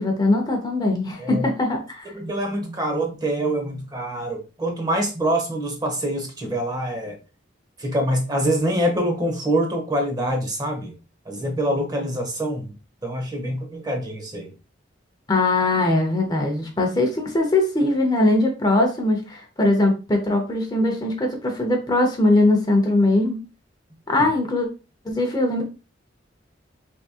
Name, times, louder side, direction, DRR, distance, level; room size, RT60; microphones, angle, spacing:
voice 1, 0.0-2.1 15.3-23.4 24.1-24.7 25.0-25.6, left 2 dB, 20° left, 2 dB, 0.6 m, -21 dB
voice 2, 2.1-7.2 7.8-10.9 11.3-12.7 13.0-14.5, right 1 dB, 20° right, 3 dB, 0.7 m, -25 dB
3.5 x 2.7 x 2.8 m, 0.32 s
head